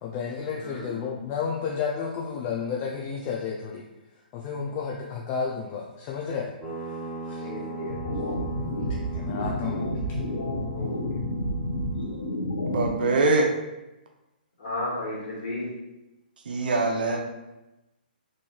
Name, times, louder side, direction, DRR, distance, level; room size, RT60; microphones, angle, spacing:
voice 1, 0.0-3.9 4.3-6.5 6.8-7.0 7.3-7.5 8.8-9.9, left 6 dB, 30° left, -3 dB, 0.3 m, -32 dB
voice 2, 0.5-0.9 7.4-8.0 10.7-10.9 14.6-15.7, left 1 dB, 60° left, -6 dB, 1.4 m, -33 dB
sound 1, 6.6-12.4, right 2 dB, 15° right, 0.8 m, -39 dB
sound 2, 7.9-12.9, left 1 dB, 85° left, 0.8 m, -30 dB
voice 3, 12.7-13.5 16.5-17.2, right 3 dB, 70° right, 2 dB, 0.5 m, -23 dB
3.1 x 2.6 x 2.3 m, 0.97 s
hypercardioid pair, 135°, 5 cm